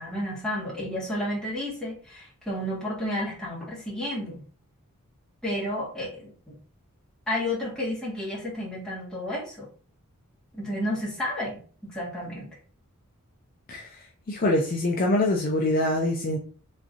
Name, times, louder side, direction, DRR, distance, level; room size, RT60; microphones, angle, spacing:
voice 1, 0.0-4.4 5.4-6.6 7.3-9.7 10.5-11.6 11.9-12.5, left 1 dB, 5° left, -7 dB, 1.5 m, -31 dB
voice 2, 14.3-16.4, left 1 dB, 40° left, 1 dB, 0.5 m, -24 dB
3.5 x 3.1 x 2.5 m, 0.41 s
head